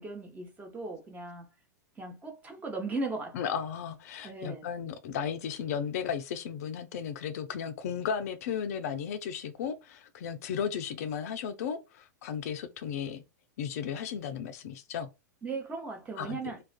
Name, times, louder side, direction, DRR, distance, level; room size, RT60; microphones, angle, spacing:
voice 1, 0.0-1.5 2.0-3.6 4.2-4.7 15.4-16.6, right 3 dB, 15° right, 0.8 m, -37 dB
voice 2, 3.3-13.2 13.6-15.1 16.2-16.5, left 7 dB, 55° left, 0.4 m, -35 dB
2.3 x 2.2 x 2.3 m
figure-of-eight pair, 95°, 10 cm